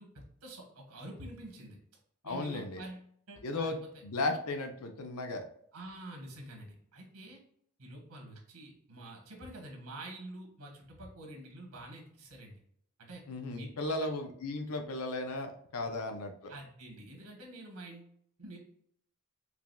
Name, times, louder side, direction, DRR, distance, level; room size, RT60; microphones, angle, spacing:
voice 1, 0.0-1.8 2.2-3.9 5.7-7.4 7.8-12.6 13.0-13.2 13.5-14.1 15.8-15.9 16.5-18.6, right 1 dB, 80° right, 1 dB, 1.4 m, -47 dB
voice 2, 2.2-2.8 3.4-5.4 13.3-16.5, left 2 dB, 85° left, 5 dB, 0.6 m, -35 dB
4.8 x 3.4 x 2.2 m, 0.66 s
head